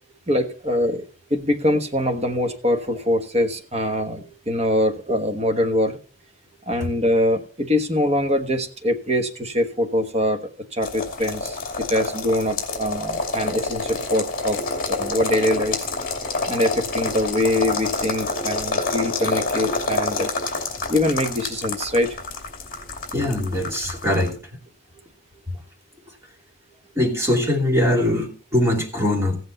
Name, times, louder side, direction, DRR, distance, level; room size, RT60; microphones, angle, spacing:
voice 1, 0.3-1.0 1.3-6.0 6.7-10.4 10.7-11.6 11.9-14.6 14.9-15.9 16.5-20.3 20.9-22.1, left 1 dB, 30° right, 4 dB, 1.3 m, -23 dB
sound 1, 10.8-24.3, left 3 dB, 40° left, 2.5 m, -28 dB
voice 2, 23.1-24.4 27.0-29.4, left 1 dB, 15° right, -2 dB, 2.8 m, -21 dB
15.5 x 7.9 x 4.1 m, 0.39 s
head